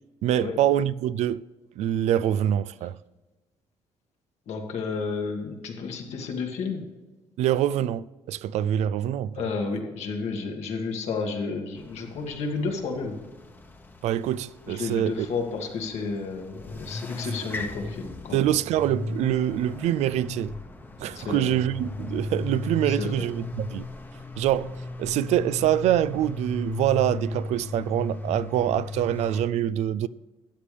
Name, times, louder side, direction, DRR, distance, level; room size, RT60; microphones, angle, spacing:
voice 1, 0.2-1.4 1.8-3.0 7.4-9.3 14.0-15.3 18.3-20.5 21.0-23.9 24.4-30.1, right 11 dB, 85° right, 0.4 m, -25 dB
voice 2, 4.5-6.8 9.3-13.2 14.7-18.5 21.1-21.5 22.9-23.3, left 4 dB, 75° left, 1.9 m, -31 dB
sound 1, 11.7-29.4, left 2 dB, 20° left, 1.0 m, -37 dB
13.0 x 8.3 x 3.4 m
cardioid pair, 100°, 11 cm